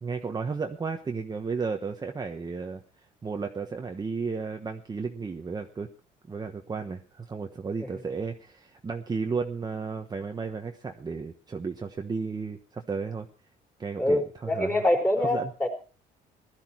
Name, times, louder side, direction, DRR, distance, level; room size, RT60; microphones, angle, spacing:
voice 1, 0.0-2.8 3.2-5.9 6.3-13.3 13.8-14.8 15.2-15.5, right 5 dB, 25° right, 4 dB, 1.2 m, -33 dB
voice 2, 14.0-15.7, left 1 dB, 10° left, 3 dB, 4.5 m, -25 dB
16.5 x 13.0 x 4.6 m, 0.38 s
cardioid pair, 110°, 17 cm